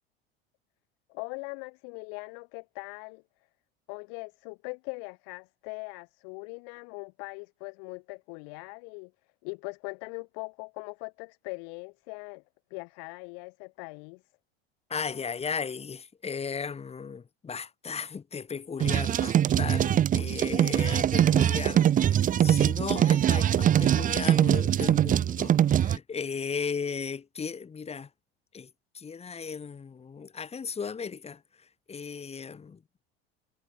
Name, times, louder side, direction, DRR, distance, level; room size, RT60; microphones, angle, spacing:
voice 1, 1.1-3.2 3.9-9.1 9.4-12.4 12.7-14.2, left 40 dB or more, 65° left, 3.8 m, -41 dB
voice 2, 14.9-28.1 28.5-32.8, left 6 dB, 20° left, 1.1 m, -36 dB
sound 1, 18.8-26.0, right 10 dB, 25° right, 0.5 m, -23 dB
hypercardioid pair, 80°, 31 cm